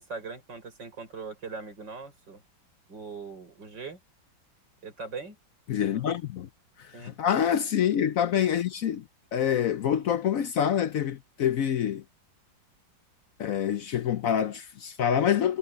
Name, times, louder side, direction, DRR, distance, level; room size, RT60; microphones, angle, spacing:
voice 1, 0.0-2.4 2.9-4.0 4.8-5.4 5.9-6.0 6.9-7.2, right 4 dB, 60° right, 6.9 m, -40 dB
voice 2, 5.7-6.5 6.8-9.0 9.3-12.0 13.4-15.6, left 9 dB, 70° left, 0.8 m, -26 dB
omnidirectional pair, 2.1 m